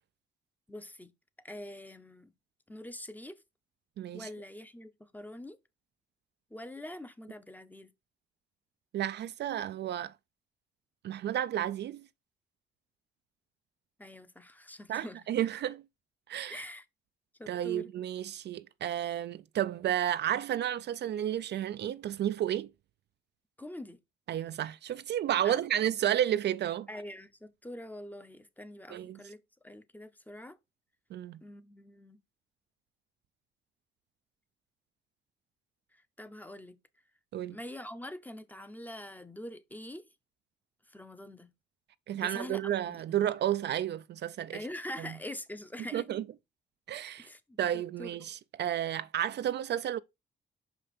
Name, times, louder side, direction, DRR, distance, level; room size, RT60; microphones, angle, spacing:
voice 1, 0.7-1.1 1.4-2.3 2.7-3.4 4.1-5.6 6.5-7.9 14.0-15.2 16.5-16.9 17.4-17.9 23.6-24.0 25.4-25.6 26.9-29.4 29.6-30.6 31.4-32.2 35.9-36.8 37.5-40.1 40.9-41.5 42.1-43.2 44.5-46.0 47.2-48.2, left 1 dB, 10° left, 0.8 m, -44 dB
voice 2, 4.0-4.3 8.9-10.1 11.0-12.1 14.9-15.8 16.3-16.6 17.5-22.7 24.3-26.9 28.9-29.2 31.1-31.4 37.3-37.6 42.1-44.6 45.0-45.1 45.9-46.2 46.9-47.3 47.6-50.0, right 11 dB, 60° right, 0.4 m, -32 dB
5.7 x 5.1 x 4.2 m
cardioid pair, 90°, 20 cm